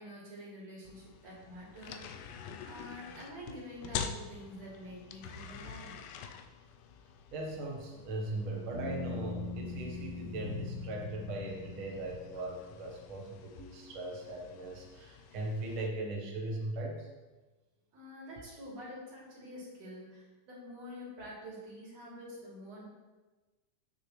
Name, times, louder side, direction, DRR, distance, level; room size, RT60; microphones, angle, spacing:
voice 1, 0.0-2.3 2.6-5.9 17.9-22.9, equal, 45° right, -6 dB, 3.9 m, -47 dB
sound 1, 0.8-15.9, left 7 dB, 80° left, 2.0 m, -47 dB
voice 2, 7.3-17.1, right 2 dB, 70° right, -1 dB, 1.2 m, -39 dB
sound 2, 8.7-12.8, left 3 dB, 85° right, 5.9 m, -42 dB
Bowed string instrument, 10.3-13.1, left 7 dB, 55° left, 4.9 m, -47 dB
16.0 x 6.2 x 3.2 m, 1.2 s
omnidirectional pair, 4.4 m